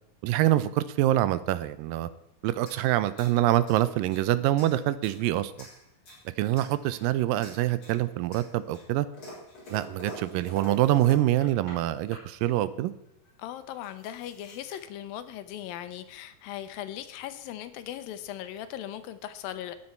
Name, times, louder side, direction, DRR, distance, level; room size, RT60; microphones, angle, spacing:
voice 1, 0.2-2.1 2.4-5.7 6.4-9.1 9.7-12.9, right 14 dB, 80° right, 14 dB, 2.2 m, -25 dB
sound 1, 2.6-4.3 4.6-5.2 5.6-6.3 6.5-7.1 7.4-8.0 8.3-11.8 12.1-12.5 13.3-13.4 13.6-14.8, equal, 35° left, 5.6 m, -46 dB
voice 2, 13.4-19.7, left 11 dB, 85° left, 10 dB, 2.5 m, -38 dB
14.0 x 9.7 x 4.4 m, 0.77 s
omnidirectional pair, 4.1 m